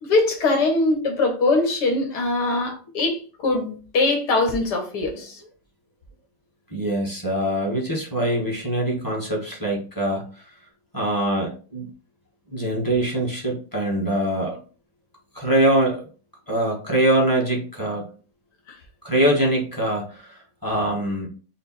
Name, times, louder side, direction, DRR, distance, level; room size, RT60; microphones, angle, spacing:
voice 1, 0.0-3.2 3.4-5.4, left 2 dB, 70° left, 1.6 m, -22 dB
voice 2, 6.7-10.3 10.9-11.9 12.5-14.6 15.3-16.0 16.5-18.1 19.0-21.3, right 1 dB, 15° left, 0.9 m, -23 dB
5.2 x 2.0 x 4.1 m
omnidirectional pair, 1.9 m